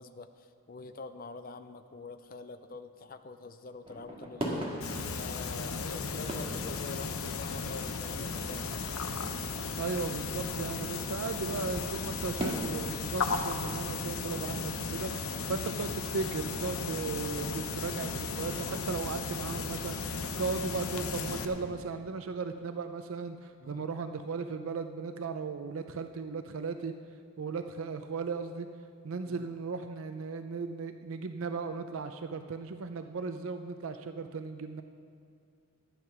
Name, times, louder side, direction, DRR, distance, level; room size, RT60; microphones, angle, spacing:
voice 1, 0.0-4.8 5.1-8.8 17.2-17.6 23.6-23.8 29.2-29.5, left 3 dB, 40° left, 9 dB, 0.5 m, -45 dB
sound 1, 3.8-21.7, right 1 dB, 25° right, 1.7 m, -45 dB
sound 2, 4.8-21.5, left 4 dB, 85° left, 0.8 m, -35 dB
voice 2, 9.8-26.9 27.4-28.7 29.0-34.8, right 4 dB, 75° right, 8 dB, 0.5 m, -36 dB
12.5 x 9.6 x 5.9 m, 2.4 s
head